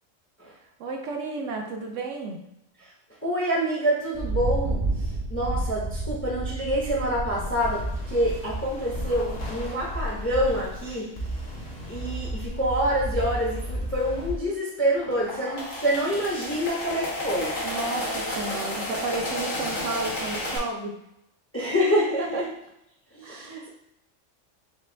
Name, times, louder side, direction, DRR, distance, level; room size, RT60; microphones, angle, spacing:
voice 1, 0.8-2.4 17.6-20.9 22.3-22.4 23.2-23.6, right 3 dB, 70° right, 2 dB, 1.1 m, -32 dB
voice 2, 3.2-11.1 11.9-17.5 21.5-22.5 23.1-23.7, equal, 15° left, -4 dB, 0.6 m, -27 dB
Thunder, 4.1-9.6, right 2 dB, 30° right, 0.6 m, -31 dB
sound 1, 7.1-14.4, equal, 55° left, 1.3 m, -34 dB
sound 2, 15.0-20.6, left 1 dB, 80° left, 1.5 m, -31 dB
5.9 x 2.3 x 3.3 m, 0.83 s
omnidirectional pair, 1.3 m